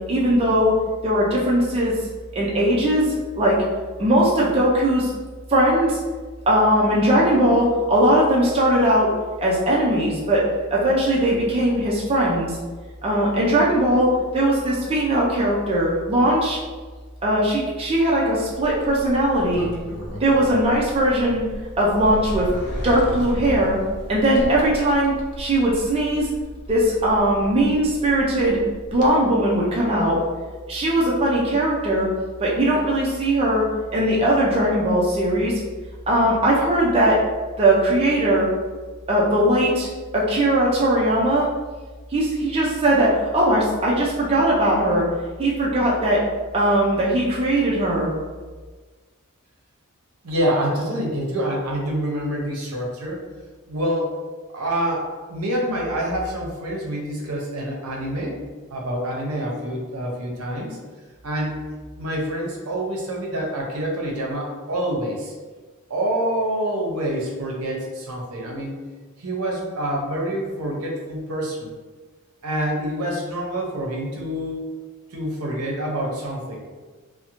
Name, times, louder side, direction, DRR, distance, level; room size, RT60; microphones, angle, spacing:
voice 1, 0.1-0.7 1.0-2.0 2.3-3.6 4.0-5.1 5.5-6.0 6.5-9.1 9.4-10.5 10.7-12.6 13.0-16.6 17.2-19.7 20.2-21.4 21.8-22.5 22.8-23.8 24.1-26.3 26.7-28.6 28.9-30.2 30.7-32.1 32.4-33.6 33.9-35.6 36.1-37.2 37.6-38.5 39.1-39.9 40.1-41.5 42.1-45.1 45.4-46.2 46.5-48.1, right 1 dB, 25° right, -5 dB, 0.4 m, -19 dB
Sliding door, 18.5-29.1, equal, 80° left, 0.5 m, -35 dB
voice 2, 50.2-53.2 53.7-54.1 54.5-58.4 58.7-60.8 61.2-61.6 62.0-65.3 65.9-68.8 69.2-71.7 72.4-74.7 75.1-76.6, right 1 dB, 75° right, -1 dB, 0.6 m, -26 dB
2.5 x 2.0 x 2.8 m, 1.4 s
head